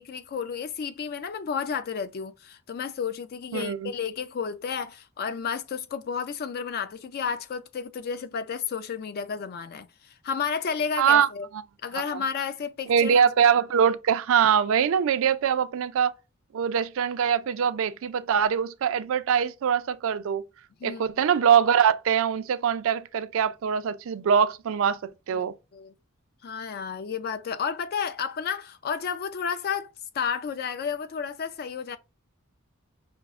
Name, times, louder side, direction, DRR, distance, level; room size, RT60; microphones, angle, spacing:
voice 1, 0.0-11.5 11.8-13.2 20.8-21.0 25.3-25.5 25.7-25.9 26.4-32.0, left 6 dB, 50° left, 0.4 m, -32 dB
voice 2, 3.5-3.9 11.0-11.3 12.1-12.2 12.9-16.1 16.5-20.4 20.8-25.0 25.3-25.5, right 7 dB, 70° right, 0.4 m, -23 dB
5.7 x 2.0 x 2.4 m
head